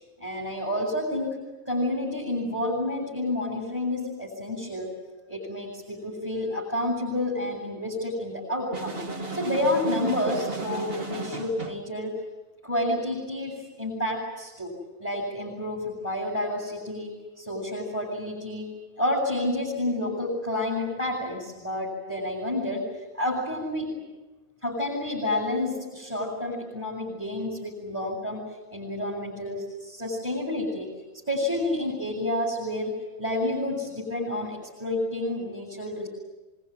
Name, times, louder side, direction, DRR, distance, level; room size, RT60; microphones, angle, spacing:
voice 1, 0.2-1.4 1.7-4.9 5.3-9.0 9.3-12.2 12.6-17.1 17.4-18.7 19.0-22.9 23.1-23.9 24.6-30.9 31.3-36.1, left 1 dB, 10° right, -4 dB, 8.1 m, -29 dB
sound 1, 8.7-11.9, right 3 dB, 40° right, 1.9 m, -35 dB
25.0 x 24.0 x 9.9 m, 1.2 s
omnidirectional pair, 1.5 m